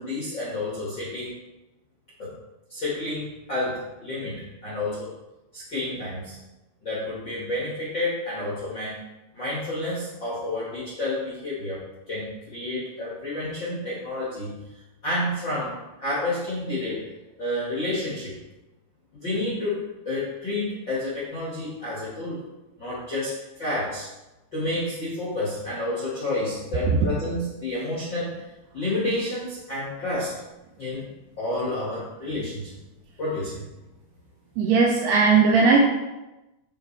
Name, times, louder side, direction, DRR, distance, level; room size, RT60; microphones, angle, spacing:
voice 1, 0.0-1.4 2.2-2.3 2.7-5.1 5.5-6.4 6.8-9.0 9.3-14.6 15.0-17.0 17.4-18.3 19.2-22.4 22.8-24.1 24.5-28.4 28.7-30.3 30.8-31.0 31.4-32.8 33.2-33.7, left 2 dB, 55° left, -8 dB, 1.2 m, -30 dB
voice 2, 34.6-35.8, right 4 dB, 80° right, -1 dB, 2.4 m, -18 dB
11.5 x 4.2 x 3.4 m, 1.0 s
omnidirectional pair, 5.4 m